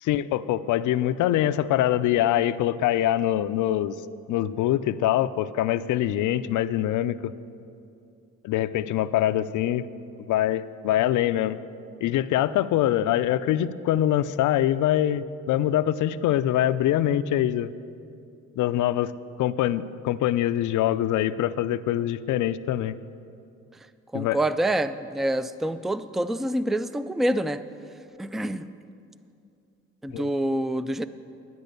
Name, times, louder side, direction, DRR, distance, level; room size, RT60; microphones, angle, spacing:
voice 1, 0.0-4.0 4.3-7.3 8.4-9.9 10.3-11.6 12.0-17.7 18.6-19.1 19.4-22.9 24.1-24.4 30.1-30.2, left 12 dB, 80° left, 14 dB, 0.5 m, -24 dB
voice 2, 24.1-27.6 28.2-28.7 30.0-31.1, right 1 dB, ahead, 13 dB, 0.3 m, -26 dB
12.5 x 9.4 x 6.7 m, 2.6 s
cardioid pair, 90°, 30 cm